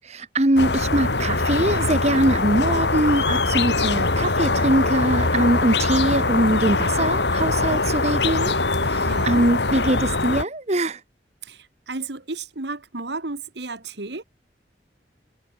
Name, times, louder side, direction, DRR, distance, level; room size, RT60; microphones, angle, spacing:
voice 1, 0.1-8.5 8.9-11.0, right 1 dB, 40° right, 1.7 m, -22 dB
sound 1, 0.6-10.4, left 3 dB, 75° left, 2.9 m, -22 dB
voice 2, 9.1-9.4 11.4-14.2, right 3 dB, 75° right, 1.9 m, -33 dB
head